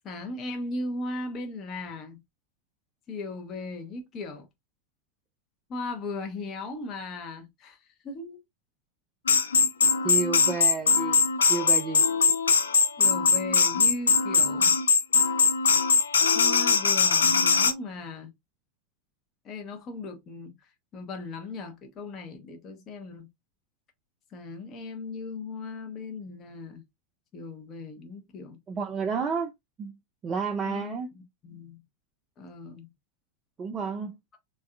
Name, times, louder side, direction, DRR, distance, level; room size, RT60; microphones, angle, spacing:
voice 1, 0.0-2.2 3.1-4.5 5.7-8.4 13.0-14.8 16.3-18.3 19.4-23.3 24.3-26.8 27.3-28.6 30.6-31.8 32.4-32.9, left 3 dB, 30° left, 0.6 m, -37 dB
sound 1, 9.3-17.7, left 5 dB, 70° left, 0.4 m, -21 dB
voice 2, 10.0-11.2 11.5-12.0 28.7-29.5 29.8-29.9 30.2-31.1 33.6-34.2, right 5 dB, 25° right, 0.3 m, -30 dB
3.4 x 2.2 x 2.3 m
figure-of-eight pair, 90°, 0 cm